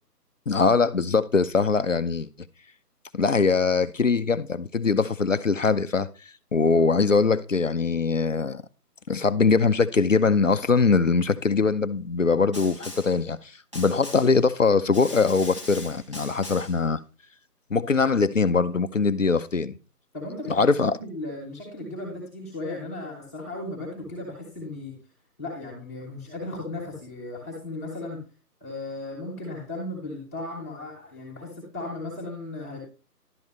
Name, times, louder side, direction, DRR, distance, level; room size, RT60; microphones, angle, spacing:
voice 1, 0.5-2.3 3.1-6.1 6.5-8.6 9.1-17.0 17.7-19.7 20.5-21.0, left 4 dB, 55° left, 0.6 m, -22 dB
Snare drum, 12.5-13.2 13.7-14.4 14.9-16.8, left 1 dB, 20° right, 1.0 m, -40 dB
voice 2, 20.1-20.6 21.0-24.9 25.4-28.2 28.6-32.8, left 2 dB, 10° left, 1.6 m, -36 dB
12.0 x 6.9 x 3.2 m
figure-of-eight pair, 175°, 48 cm